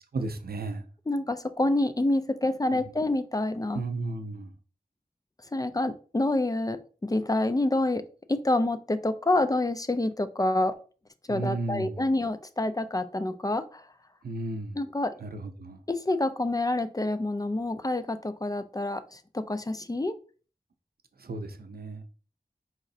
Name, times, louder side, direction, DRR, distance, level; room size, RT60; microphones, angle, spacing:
voice 1, 0.1-0.8 2.7-2.8 3.7-4.5 11.3-12.1 14.2-14.8 15.2-15.8 21.2-22.0, right 2 dB, 80° right, 0.5 m, -34 dB
voice 2, 1.1-3.8 5.5-8.0 8.3-10.8 11.3-13.8 14.8-15.1 15.9-20.2, left 2 dB, 25° left, 0.3 m, -27 dB
4.8 x 3.0 x 2.6 m
wide cardioid pair, 50°, 15 cm